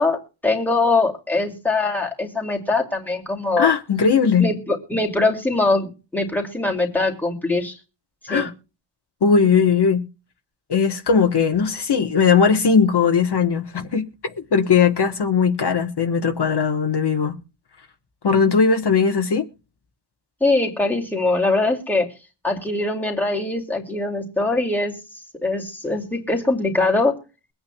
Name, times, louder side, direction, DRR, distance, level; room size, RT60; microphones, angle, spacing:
voice 1, 0.0-3.7 4.4-7.7 8.3-8.5 20.4-22.1 22.4-24.9 25.4-27.2, left 2 dB, 5° left, 2.4 m, -22 dB
voice 2, 3.6-4.5 8.3-8.5 9.2-10.0 10.7-17.4 18.2-19.5, left 6 dB, 55° left, 1.2 m, -18 dB
23.0 x 8.9 x 2.3 m
wide cardioid pair, 110°, 49 cm